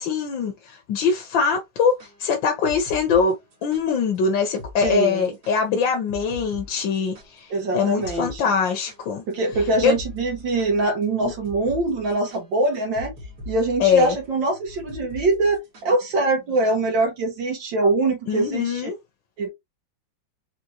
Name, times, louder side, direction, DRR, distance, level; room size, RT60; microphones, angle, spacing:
voice 1, 0.0-3.3 3.6-9.2 9.8-10.0 13.8-14.1 18.3-18.9, left 6 dB, 80° left, 1.6 m, -22 dB
sound 1, 1.8-3.8 4.1-4.2 4.6-5.0 5.2-7.6 8.0-8.4 8.7-16.0, left 2 dB, 55° right, 1.8 m, -41 dB
voice 2, 4.8-5.2 7.5-8.4 9.3-13.1 13.5-18.9 19.4-19.5, right 2 dB, 75° right, 1.9 m, -23 dB
5.1 x 2.9 x 2.8 m
omnidirectional pair, 2.0 m